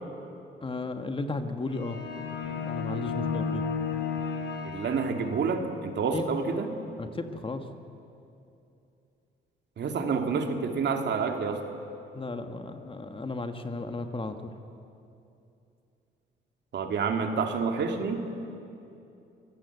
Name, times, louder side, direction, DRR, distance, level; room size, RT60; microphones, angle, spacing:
voice 1, 0.6-2.0 2.4-3.6 6.1-6.2 7.0-7.6 12.1-14.5, left 3 dB, 25° left, 7 dB, 1.6 m, -34 dB
sound 1, 1.7-5.7, left 5 dB, 65° left, 3.1 m, -33 dB
voice 2, 4.6-6.8 9.8-11.6 16.7-18.4, right 5 dB, 60° right, 4 dB, 2.4 m, -28 dB
25.0 x 17.0 x 8.1 m, 2.7 s
cardioid pair, 90°, 20 cm